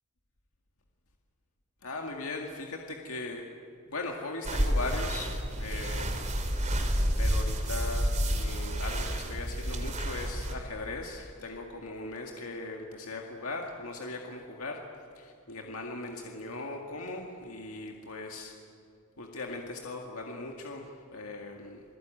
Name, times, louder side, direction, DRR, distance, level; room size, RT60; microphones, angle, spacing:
voice 1, 1.8-3.4 3.9-6.2 7.2-14.8 15.1-18.5 19.2-21.8, left 2 dB, 65° left, 1 dB, 2.1 m, -39 dB
sound 1, 4.4-10.5, equal, 35° right, 3.2 m, -30 dB
28.5 x 20.5 x 9.1 m, 2.6 s
head